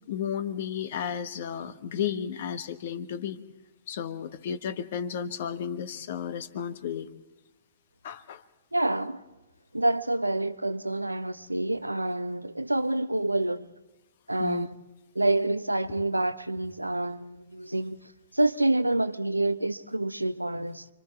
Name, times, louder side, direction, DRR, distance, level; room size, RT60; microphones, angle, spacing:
voice 1, 0.1-3.4 3.9-7.1 8.0-8.4 14.4-14.7, left 8 dB, 50° left, 1.3 m, -33 dB
voice 2, 8.7-9.2 9.7-13.7 14.3-14.7 15.1-20.9, right 2 dB, 85° right, 0.8 m, -27 dB
30.0 x 25.0 x 3.5 m
figure-of-eight pair, 110°, 0 cm